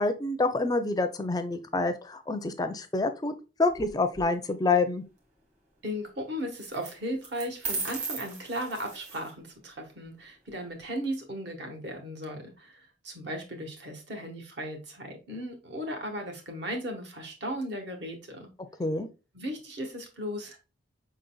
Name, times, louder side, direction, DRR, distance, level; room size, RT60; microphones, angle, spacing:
voice 1, 0.0-3.3 3.6-5.0 18.8-19.1, left 3 dB, 20° left, 9 dB, 0.4 m, -27 dB
sound 1, 3.7-4.2 6.6-6.9 7.2-9.3, right 4 dB, 40° right, 1.6 m, -36 dB
voice 2, 5.8-18.5 19.3-20.6, equal, 60° right, 3 dB, 1.3 m, -36 dB
5.3 x 3.9 x 2.3 m, 0.31 s
head